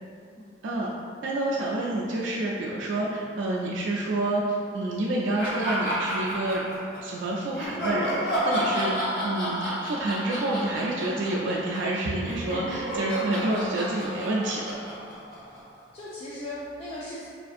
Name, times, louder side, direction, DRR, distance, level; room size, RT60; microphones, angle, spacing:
voice 1, 1.2-6.6 7.0-8.9 9.2-14.9, right 2 dB, 75° right, -3 dB, 0.3 m, -28 dB
sound 1, 5.4-7.0 7.5-15.8, equal, 55° left, 0.9 m, -31 dB
voice 2, 15.9-17.3, left 1 dB, 30° left, -8 dB, 0.4 m, -38 dB
5.0 x 2.5 x 2.4 m, 2.5 s
head